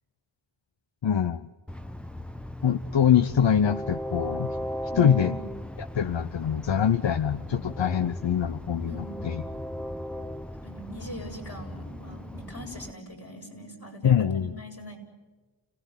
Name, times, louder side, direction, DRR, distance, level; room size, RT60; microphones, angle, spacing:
voice 1, 1.0-1.5 2.6-4.6 5.0-5.3 5.8-9.4 14.0-14.5, left 8 dB, 85° left, 12 dB, 0.8 m, -24 dB
Train, 1.7-12.9, left 1 dB, ahead, 1.0 m, -37 dB
voice 2, 4.9-5.5 8.9-9.5 10.5-15.0, left 1 dB, 55° left, 0 dB, 8.0 m, -41 dB
30.0 x 18.5 x 9.5 m, 1.3 s
cardioid pair, 45°, 43 cm